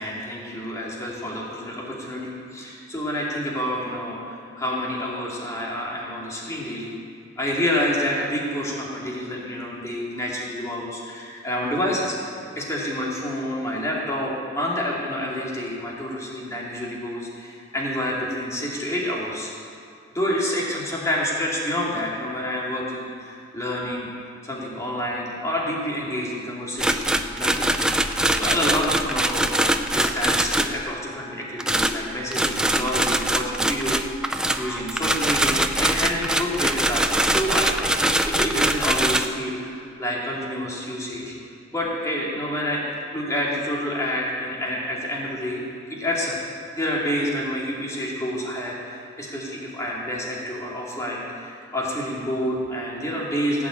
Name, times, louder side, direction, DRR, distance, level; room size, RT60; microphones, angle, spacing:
voice 1, 0.0-6.9 7.4-19.5 20.1-24.1 24.4-27.8 28.3-41.3 41.7-45.6 45.9-46.4 46.8-53.7, equal, 15° left, -4 dB, 2.5 m, -28 dB
sound 1, 26.8-30.8 31.6-39.3, right 1 dB, 5° right, 0.4 m, -23 dB
16.5 x 6.1 x 8.7 m, 2.4 s
head